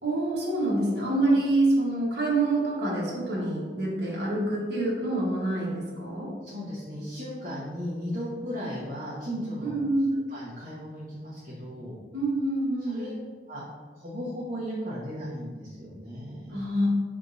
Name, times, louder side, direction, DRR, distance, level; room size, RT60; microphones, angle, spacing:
voice 1, 0.0-6.3 9.6-10.1 12.1-13.2 16.5-16.9, right 2 dB, 70° right, -5 dB, 1.2 m, -26 dB
voice 2, 6.4-9.8 10.3-12.0 12.8-13.2 13.5-13.6 14.0-16.6, equal, 45° right, -10 dB, 1.1 m, -36 dB
4.7 x 3.6 x 2.6 m, 1.5 s
head